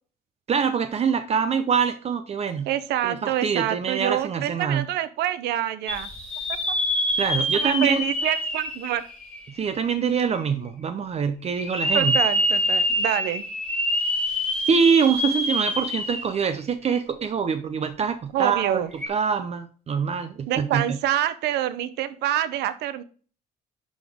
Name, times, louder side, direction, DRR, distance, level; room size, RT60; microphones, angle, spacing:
voice 1, 0.5-2.7 3.0-4.9 7.2-8.0 9.6-12.1 14.7-21.0, right 6 dB, 40° right, 9 dB, 0.7 m, -24 dB
voice 2, 2.7-6.1 6.5-6.6 7.5-9.0 11.9-13.4 18.3-18.9 20.5-23.0, right 12 dB, 80° right, 14 dB, 0.7 m, -26 dB
sound 1, 5.9-9.8 10.4-10.5 11.5-16.5 16.8-16.9 18.9-19.1, equal, 5° left, 2.1 m, -26 dB
11.0 x 3.9 x 3.5 m, 0.42 s
cardioid pair, 110°, 17 cm